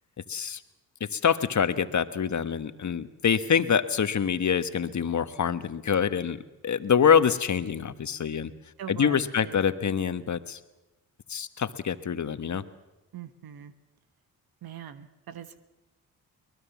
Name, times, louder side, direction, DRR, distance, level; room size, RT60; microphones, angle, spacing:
voice 1, 0.3-0.6 1.1-8.5 8.9-10.6 11.3-12.6, left 7 dB, 50° left, 12 dB, 1.3 m, -25 dB
voice 2, 8.8-9.6 13.1-13.7 14.6-15.6, right 9 dB, 70° right, 11 dB, 1.3 m, -42 dB
23.0 x 19.5 x 7.2 m, 1.0 s
supercardioid pair, 50°, 38 cm